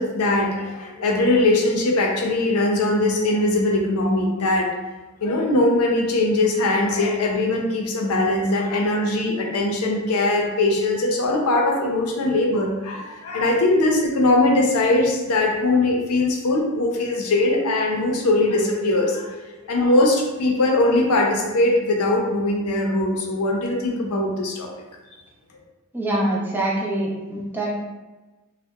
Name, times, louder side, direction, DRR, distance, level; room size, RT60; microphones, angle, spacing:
voice 1, 0.0-4.7 5.2-24.7, left 2 dB, 90° left, 0 dB, 0.5 m, -21 dB
voice 2, 25.9-27.7, right 1 dB, 10° right, -5 dB, 0.3 m, -24 dB
2.7 x 2.0 x 2.3 m, 1.1 s
head